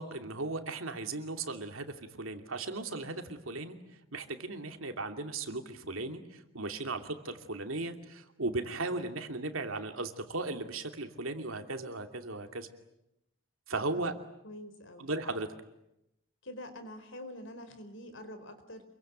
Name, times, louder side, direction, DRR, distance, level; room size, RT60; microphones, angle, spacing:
voice 1, 0.0-3.8 4.1-12.7 13.7-14.1 15.0-15.5, right 2 dB, 85° right, 6 dB, 2.7 m, -36 dB
voice 2, 14.4-15.1 16.4-18.8, left 1 dB, 65° left, 8 dB, 4.6 m, -46 dB
28.0 x 23.0 x 9.1 m, 0.86 s
head